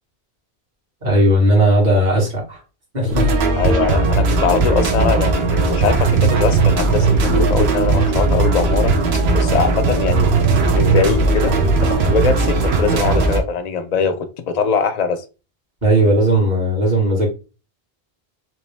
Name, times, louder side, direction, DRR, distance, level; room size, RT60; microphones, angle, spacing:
voice 1, 1.0-2.6 2.9-3.3 15.8-17.3, right 1 dB, 45° right, 1.6 m, -16 dB
sound 1, 3.1-13.4, right 3 dB, 80° right, 1.0 m, -17 dB
voice 2, 3.6-8.9 9.3-11.6 11.8-15.2, left 5 dB, 50° left, 0.5 m, -21 dB
3.1 x 3.0 x 3.3 m
omnidirectional pair, 1.1 m